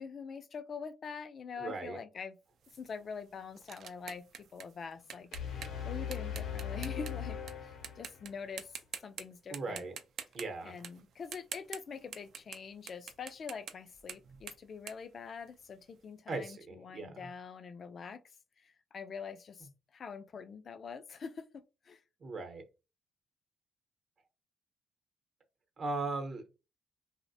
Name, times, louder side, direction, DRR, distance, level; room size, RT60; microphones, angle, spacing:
voice 1, 0.0-2.4 2.7-8.7 9.0-9.9 10.6-18.2 18.6-22.0, left 5 dB, 50° left, 0.3 m, -45 dB
voice 2, 1.6-2.0 9.5-9.9 10.3-10.7 16.3-17.3 22.2-22.6 25.8-26.5, right 3 dB, 50° right, 0.7 m, -38 dB
sound 1, 2.6-7.5 7.8-8.3 8.6-9.2 9.5-15.9, right 7 dB, 70° right, 0.4 m, -46 dB
sound 2, 5.3-8.5, left 8 dB, 80° left, 0.6 m, -39 dB
2.4 x 2.0 x 2.6 m
cardioid pair, 90°, 0 cm